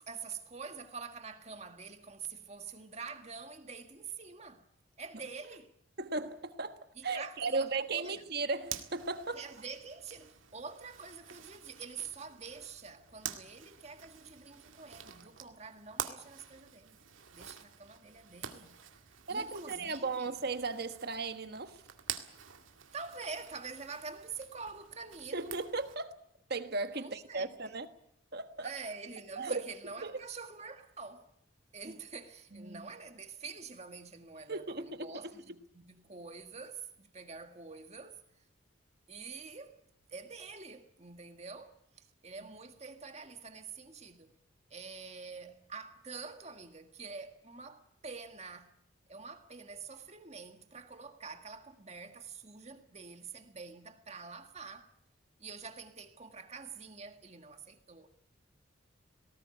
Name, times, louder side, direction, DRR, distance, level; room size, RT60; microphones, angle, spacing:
voice 1, 0.0-4.7 5.0-5.7 6.9-8.2 9.3-17.0 17.3-18.8 19.3-20.3 22.9-25.5 26.9-27.7 28.6-31.3 31.7-38.2 39.1-39.8 40.1-44.3 44.7-48.7 49.1-54.9 55.4-58.1, right 5 dB, 35° right, 1.8 m, -46 dB
voice 2, 6.0-9.4 19.3-21.8 25.3-26.2 26.5-27.9 28.3-28.7 29.4-29.6 30.0-30.1 32.5-32.9 34.5-35.3, right 3 dB, 50° right, 1.4 m, -36 dB
Zipper (clothing), 8.6-26.0, right 9 dB, 85° right, 2.0 m, -48 dB
19.0 x 18.0 x 9.8 m
head